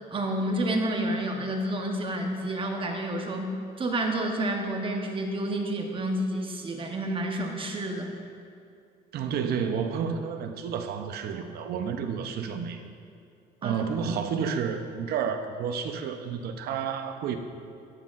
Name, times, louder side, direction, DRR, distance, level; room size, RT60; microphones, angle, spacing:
voice 1, 0.1-8.2 13.6-13.8, right 1 dB, 30° right, 2 dB, 1.0 m, -29 dB
voice 2, 9.1-12.8 13.6-17.4, right 7 dB, 70° right, 7 dB, 0.7 m, -30 dB
11.5 x 7.4 x 2.5 m, 2.4 s
cardioid pair, 110°, 17 cm